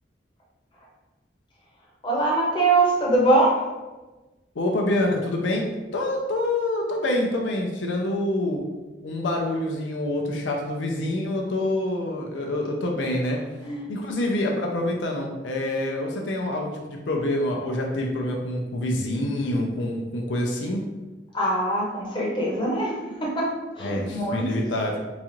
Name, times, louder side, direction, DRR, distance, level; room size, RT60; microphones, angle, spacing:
voice 1, 2.0-3.6 13.6-13.9 21.3-24.5, right 2 dB, 25° left, -4 dB, 0.8 m, -23 dB
voice 2, 4.6-5.7 5.9-8.6 9.0-13.4 13.9-20.8 23.8-25.0, left 1 dB, 85° left, 1 dB, 0.5 m, -26 dB
3.9 x 2.4 x 3.0 m, 1.1 s
head